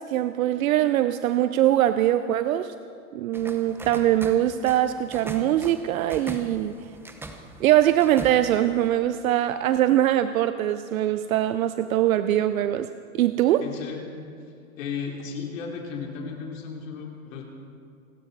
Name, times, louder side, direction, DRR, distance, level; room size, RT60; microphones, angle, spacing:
voice 1, 0.0-2.7 3.1-6.7 7.6-12.9 13.1-13.6, right 12 dB, 70° right, 11 dB, 0.7 m, -22 dB
sound 1, 3.3-8.9, right 2 dB, 5° right, 0.9 m, -41 dB
voice 2, 13.6-14.2 14.8-17.4, left 6 dB, 60° left, 0 dB, 3.2 m, -34 dB
29.0 x 12.0 x 4.0 m, 2.4 s
hypercardioid pair, 125°, 43 cm